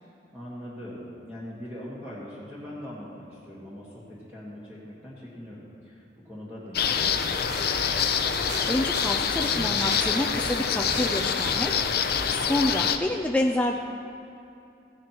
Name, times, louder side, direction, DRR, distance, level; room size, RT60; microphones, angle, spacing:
voice 1, 0.3-7.7, equal, 10° right, -9 dB, 1.5 m, -41 dB
sound 1, 6.7-13.0, left 7 dB, 55° left, 0.5 m, -26 dB
sound 2, 7.5-12.5, right 3 dB, 65° right, 1.0 m, -39 dB
voice 2, 8.3-11.7 12.1-13.8, left 1 dB, 10° left, 1 dB, 0.3 m, -28 dB
15.5 x 9.6 x 2.9 m, 2.6 s
head